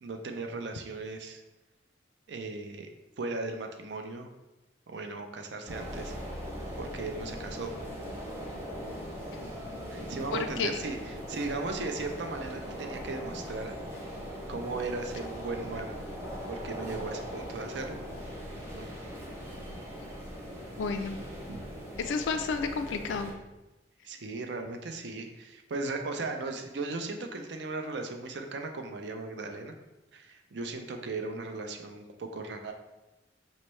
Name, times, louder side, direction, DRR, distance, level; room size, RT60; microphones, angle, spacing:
voice 1, 0.0-1.4 2.3-2.9 3.2-4.3 4.9-6.2 6.8-7.8 9.9-13.8 14.5-16.0 16.5-18.0 18.7-18.9 21.5-21.6 24.0-29.7 30.1-32.7, right 3 dB, 70° right, 5 dB, 0.5 m, -37 dB
sound 1, 5.7-23.3, equal, 15° right, 0.9 m, -40 dB
voice 2, 10.3-10.7 20.8-21.2 22.0-23.3, left 5 dB, 85° left, 8 dB, 0.3 m, -31 dB
5.3 x 3.2 x 3.1 m, 1.0 s
head